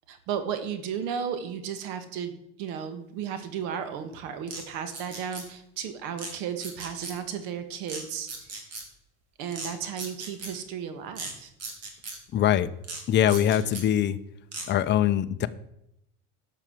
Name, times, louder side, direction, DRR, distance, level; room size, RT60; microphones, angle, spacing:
voice 1, 0.1-8.5 9.4-11.5, right 8 dB, 80° right, 9 dB, 1.7 m, -34 dB
sound 1, 4.5-4.6 4.9-5.5 6.2-6.3 6.6-7.1 7.9-8.0 8.3-8.8 9.5-9.7 10.0-10.5 11.1-11.3 11.6-12.2 12.8-13.0 13.3-13.8 14.5-14.6, right 3 dB, 45° right, 3.1 m, -37 dB
voice 2, 12.3-12.7 13.1-14.2 14.7-15.5, left 11 dB, 30° left, 10 dB, 0.6 m, -22 dB
11.5 x 5.9 x 7.7 m, 0.80 s
cardioid pair, 130°, 35 cm